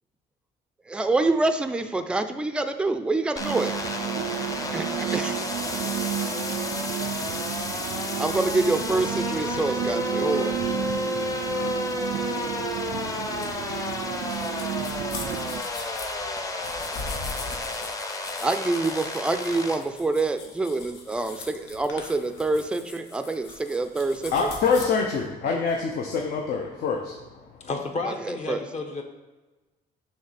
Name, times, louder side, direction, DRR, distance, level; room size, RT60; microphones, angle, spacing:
voice 1, 0.9-3.8 4.7-4.9 5.1-5.4 7.0-7.2 8.2-10.6 18.4-24.5 28.3-28.6, right 2 dB, 5° right, 8 dB, 0.4 m, -26 dB
sound 1, 3.4-19.8, left 2 dB, 20° left, 0.8 m, -31 dB
sound 2, 3.4-15.6, right 12 dB, 70° right, 0.4 m, -32 dB
sound 3, 13.4-24.8, left 4 dB, 80° left, 1.3 m, -40 dB
voice 2, 24.3-27.2, left 5 dB, 65° left, 1 dB, 0.9 m, -25 dB
voice 3, 27.6-29.0, left 3 dB, 40° left, 3 dB, 1.1 m, -31 dB
6.8 x 3.2 x 5.7 m, 1.2 s
cardioid pair, 110°, 17 cm